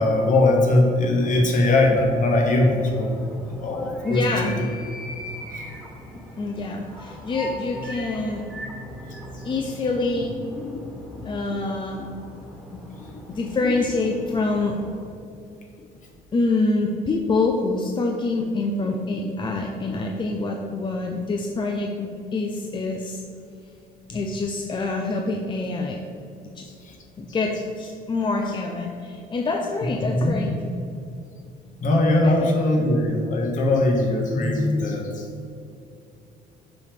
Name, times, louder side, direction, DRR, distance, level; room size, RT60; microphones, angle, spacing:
voice 1, 0.0-4.6 5.5-5.6 9.1-9.2 26.8-26.9 30.1-30.4 31.8-35.2, left 2 dB, 50° left, 1 dB, 1.6 m, -21 dB
sound 1, 1.2-15.1, equal, 5° left, 1.9 m, -40 dB
voice 2, 4.0-4.6 6.4-8.5 9.4-12.1 12.7-14.8 15.8-15.9 16.3-23.2 24.1-26.0 26.6-26.7 27.2-30.5 32.2-32.5 32.8-32.9, left 3 dB, 30° left, 2 dB, 0.6 m, -26 dB
7.0 x 5.1 x 5.0 m, 2.6 s
cardioid pair, 110°, 17 cm